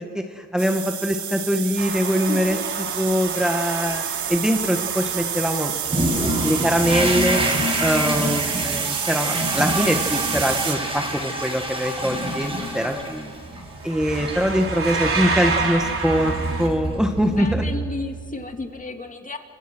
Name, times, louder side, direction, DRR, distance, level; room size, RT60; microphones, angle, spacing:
voice 1, 0.0-2.6 3.0-5.7 6.4-7.4 7.8-13.3 13.8-17.6, equal, ahead, 4 dB, 1.7 m, -23 dB
sound 1, 0.6-10.8, right 10 dB, 70° right, 2.0 m, -29 dB
sound 2, 1.8-8.9 13.1-13.4 13.7-16.7, right 4 dB, 45° right, 4.1 m, -30 dB
voice 2, 2.3-2.6 17.3-19.4, left 3 dB, 25° left, 4 dB, 2.7 m, -32 dB
Toilet flush, 5.8-18.2, right 1 dB, 20° right, 6.7 m, -27 dB
30.0 x 26.5 x 6.3 m, 2.1 s
cardioid pair, 90°, 30 cm